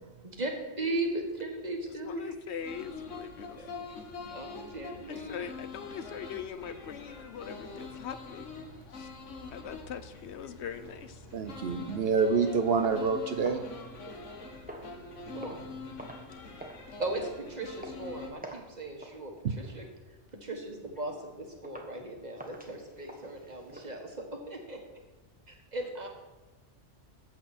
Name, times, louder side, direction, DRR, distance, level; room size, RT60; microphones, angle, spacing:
voice 1, 0.2-2.3 3.6-3.7 4.3-5.4 15.2-15.6 17.0-19.9 20.4-24.0 24.5-24.8 25.5-26.1, right 2 dB, 35° right, 2 dB, 1.7 m, -37 dB
voice 2, 2.0-3.9 5.1-8.5 8.9-9.1 9.5-11.3, left 7 dB, 70° left, 12 dB, 0.9 m, -41 dB
sound 1, 2.6-18.3, left 4 dB, 90° left, 1.6 m, -45 dB
voice 3, 11.3-13.6, right 5 dB, 60° right, 8 dB, 0.9 m, -27 dB
sound 2, 12.8-14.3 14.7-15.0 15.4-15.7 16.0-16.3 16.6-16.9 17.2-17.4 17.8-18.0 18.4-18.7 19.0-19.2 19.6-19.9 20.3-20.5 21.0-21.1 21.6-22.0 22.4-23.9, right 1 dB, 10° right, 1.1 m, -47 dB
14.0 x 7.9 x 4.3 m, 1.1 s
omnidirectional pair, 1.2 m